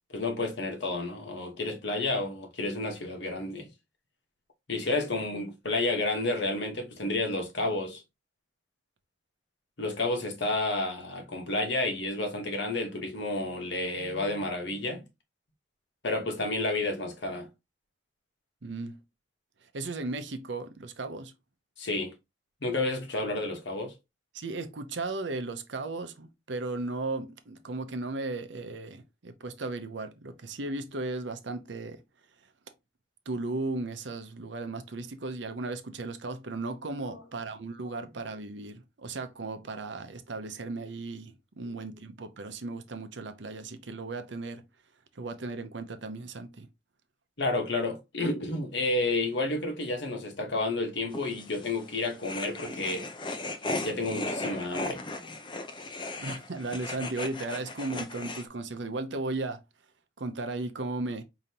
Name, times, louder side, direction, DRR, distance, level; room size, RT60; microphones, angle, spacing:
voice 1, 0.1-3.7 4.7-8.0 9.8-15.0 16.0-17.5 21.8-22.1 22.6-23.9 37.1-37.2 41.6-41.7 47.4-53.1 53.8-55.0, left 2 dB, 65° left, 1.2 m, -30 dB
voice 2, 18.6-19.0 19.7-21.3 24.3-32.0 33.3-44.6 45.2-46.7 56.2-59.6 60.2-61.2, right 2 dB, 70° right, 0.7 m, -36 dB
sound 1, 51.1-58.5, left 2 dB, 25° left, 0.5 m, -37 dB
5.1 x 2.9 x 2.8 m
head